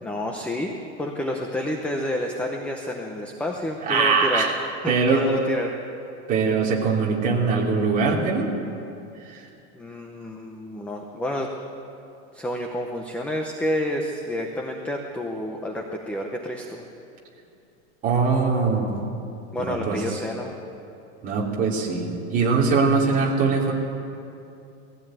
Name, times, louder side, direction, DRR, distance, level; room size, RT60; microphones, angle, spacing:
voice 1, 0.0-4.5 4.8-5.7 9.7-11.5 12.3-16.8 19.5-20.5, left 1 dB, 5° left, 2 dB, 0.7 m, -29 dB
voice 2, 3.8-4.5 4.9-5.2 6.3-8.5 9.3-9.4 18.0-18.9 19.6-20.0 21.2-23.7, right 4 dB, 25° right, -3 dB, 3.0 m, -22 dB
19.0 x 16.0 x 9.0 m, 2.7 s
supercardioid pair, 170°, 36 cm